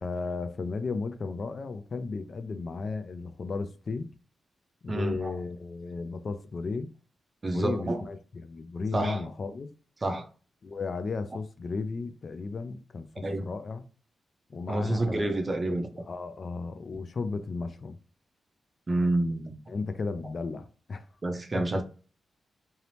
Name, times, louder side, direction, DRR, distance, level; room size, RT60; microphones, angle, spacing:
voice 1, 0.0-4.1 4.8-6.9 7.5-9.7 10.6-13.8 14.5-15.8 16.1-18.0 19.7-21.0 21.5-21.6, left 4 dB, 45° left, 0.3 m, -34 dB
voice 2, 4.9-5.3 7.4-8.0 8.9-9.3 10.0-10.3 13.2-13.5 14.7-15.9 18.9-19.6 21.2-21.8, right 2 dB, 30° right, 0.5 m, -28 dB
2.7 x 2.0 x 3.1 m
wide cardioid pair, 115°, 0 cm